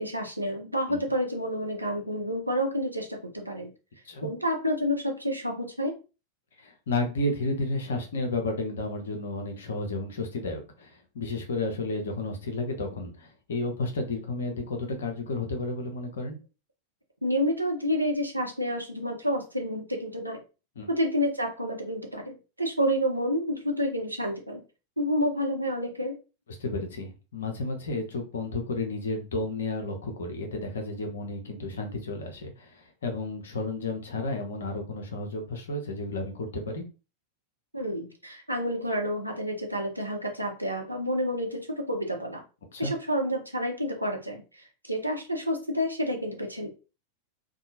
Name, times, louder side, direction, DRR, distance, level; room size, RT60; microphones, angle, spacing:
voice 1, 0.0-3.7 4.2-5.9 17.2-20.4 20.9-24.6 25.0-26.1 37.7-42.4 42.8-46.7, equal, 85° right, 2 dB, 0.6 m, -29 dB
voice 2, 6.6-16.4 20.8-20.9 26.6-36.8 42.7-42.9, left 2 dB, 65° left, 3 dB, 0.8 m, -32 dB
2.7 x 2.3 x 2.7 m, 0.32 s
figure-of-eight pair, 90°, 0 cm